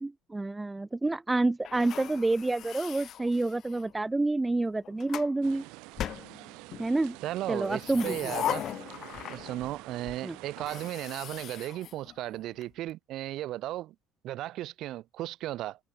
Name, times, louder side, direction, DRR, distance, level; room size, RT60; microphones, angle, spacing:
voice 1, 0.0-5.6 6.8-7.1 7.5-8.2 10.2-10.3, right 2 dB, 10° right, 1.7 m, -28 dB
sound 1, 1.6-3.9 4.7-5.3 6.0-6.9 7.6-9.8 10.1-10.2 10.6-12.6, left 11 dB, 40° left, 4.2 m, -38 dB
sound 2, 5.4-10.9, right 25 dB, 80° right, 6.9 m, -48 dB
voice 2, 7.2-8.7 9.3-13.9 14.2-15.8, right 14 dB, 55° right, 6.2 m, -35 dB
cardioid pair, 155°, 0 cm